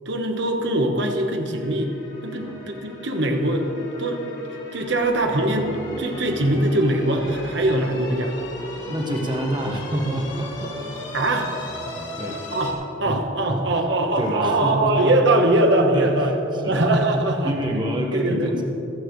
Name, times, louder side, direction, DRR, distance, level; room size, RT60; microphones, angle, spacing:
voice 1, 0.0-1.9 2.2-3.6 4.0-4.3 4.7-8.3 11.1-11.5 12.5-12.7 13.0-17.5 18.1-18.5, right 1 dB, 60° right, 3 dB, 1.2 m, -22 dB
sound 1, 1.5-12.7, left 2 dB, 60° left, 3.5 m, -36 dB
voice 2, 8.9-11.0 11.9-12.4 13.0-13.2 13.5-13.9 14.2-15.2 15.9-16.3 16.6-16.9 17.4-18.6, right 1 dB, 20° right, 0 dB, 1.4 m, -27 dB
26.5 x 9.0 x 3.2 m, 3.0 s
head